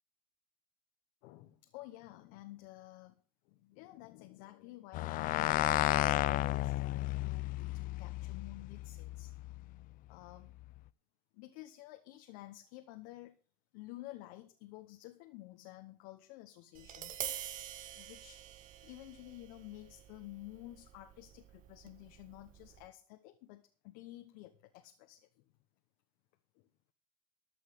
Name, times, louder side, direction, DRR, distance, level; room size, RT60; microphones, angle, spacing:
voice 1, 1.2-9.4 10.1-10.6 11.3-13.4 13.7-17.5 17.9-18.4 18.8-25.4 26.5-26.7, left 17 dB, 75° left, 1.1 m, -52 dB
sound 1, 4.9-9.6, left 17 dB, 60° left, 0.5 m, -33 dB
Tap, 16.7-22.9, right 11 dB, 60° right, 1.5 m, -47 dB
14.0 x 5.7 x 8.0 m
hypercardioid pair, 75°, 16 cm